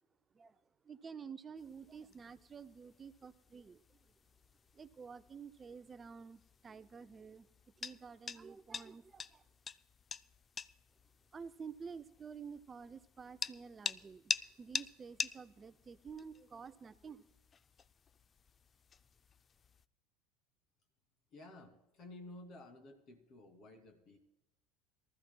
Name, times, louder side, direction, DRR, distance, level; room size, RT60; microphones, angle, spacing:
voice 1, 0.3-4.1 4.7-7.5 7.8-9.4 11.3-17.3, right 6 dB, 30° right, 13 dB, 0.5 m, -51 dB
sound 1, 1.6-19.9, left 6 dB, 30° left, 0.4 m, -47 dB
voice 2, 21.3-24.2, left 2 dB, 50° left, 6 dB, 2.6 m, -53 dB
23.5 x 14.0 x 2.3 m, 0.94 s
hypercardioid pair, 75°, 0 cm